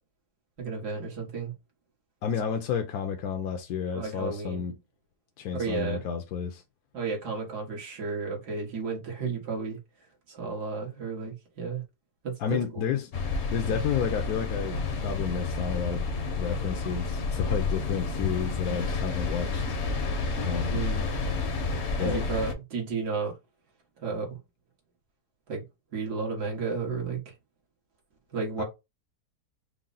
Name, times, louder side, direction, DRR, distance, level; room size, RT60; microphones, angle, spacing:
voice 1, 0.6-1.5 3.9-4.6 5.5-6.0 6.9-9.8 10.3-11.8 12.5-12.6 20.7-21.1 22.0-23.3 24.0-24.4 25.5-25.6 25.9-27.2 28.3-28.6, right 4 dB, 75° right, 2.0 m, -32 dB
voice 2, 2.2-4.8 5.4-6.6 12.4-13.1 13.5-19.7 20.4-20.8 22.0-22.2 28.6-28.7, left 7 dB, 75° left, 1.1 m, -31 dB
sound 1, 13.1-22.5, left 3 dB, 55° left, 0.9 m, -30 dB
4.7 x 2.0 x 3.9 m
omnidirectional pair, 1.7 m